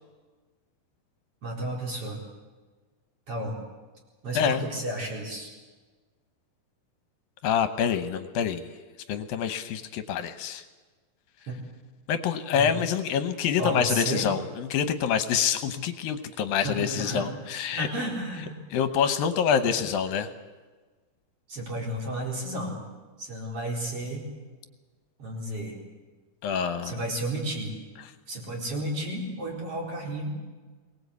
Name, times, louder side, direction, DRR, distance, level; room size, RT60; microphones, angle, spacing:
voice 1, 1.4-2.2 3.3-3.5 4.2-5.5 11.5-11.6 12.5-12.7 13.6-14.3 16.6-17.3 17.7-18.6 19.7-19.8 21.5-22.8 23.2-24.3 25.2-25.8 26.8-27.7 28.3-30.3, right 1 dB, 40° right, -1 dB, 5.2 m, -32 dB
voice 2, 7.4-8.7 9.1-10.6 12.1-17.9 18.7-20.3 26.4-27.0, left 7 dB, 75° left, 10 dB, 2.7 m, -26 dB
23.0 x 19.0 x 8.4 m, 1.4 s
omnidirectional pair, 4.3 m